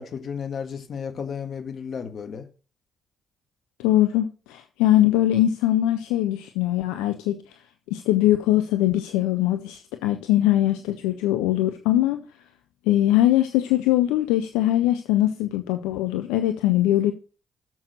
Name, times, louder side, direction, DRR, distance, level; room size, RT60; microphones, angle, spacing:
voice 1, 0.0-2.4, left 6 dB, 50° left, 1.7 m, -33 dB
voice 2, 3.8-7.6 7.9-12.2 12.9-17.1, left 14 dB, 75° left, 0.6 m, -21 dB
7.2 x 6.1 x 6.5 m
figure-of-eight pair, 45°, 0 cm